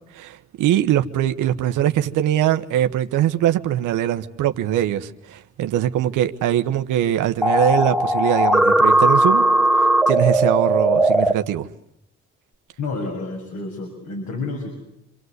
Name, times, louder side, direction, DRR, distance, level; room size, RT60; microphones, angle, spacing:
voice 1, 0.1-9.5 9.8-11.7, right 11 dB, 90° right, 1.3 m, -22 dB
sound 1, 7.4-11.3, right 1 dB, ahead, 1.9 m, -17 dB
voice 2, 12.8-14.7, left 3 dB, 65° left, 6.6 m, -29 dB
28.5 x 25.0 x 8.1 m
cardioid pair, 90°, 30 cm